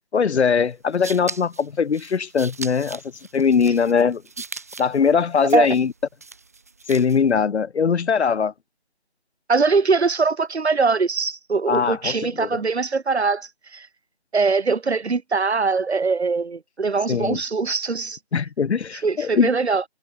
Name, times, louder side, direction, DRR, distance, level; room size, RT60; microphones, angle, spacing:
voice 1, 0.1-3.0 3.3-4.2 4.8-5.9 6.9-8.5 11.7-12.5 17.1-17.4 18.3-19.5, left 6 dB, 80° left, 0.6 m, -21 dB
sound 1, 0.7-7.3, right 4 dB, 15° right, 2.5 m, -39 dB
voice 2, 9.5-13.9 14.3-18.2 19.0-19.8, right 4 dB, 75° right, 0.9 m, -22 dB
figure-of-eight pair, 170°, 33 cm